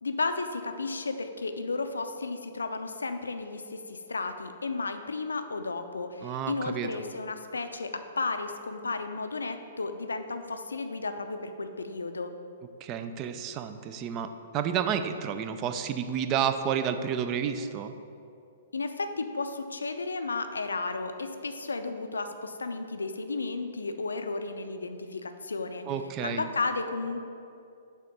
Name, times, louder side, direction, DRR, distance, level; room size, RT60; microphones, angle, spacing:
voice 1, 0.0-12.3 18.7-25.8 26.2-27.3, left 3 dB, 75° left, 8 dB, 0.4 m, -33 dB
voice 2, 6.2-7.0 12.8-17.9 25.9-26.5, right 8 dB, 30° right, 9 dB, 0.3 m, -31 dB
6.4 x 3.6 x 5.3 m, 2.6 s
figure-of-eight pair, 115°, 0 cm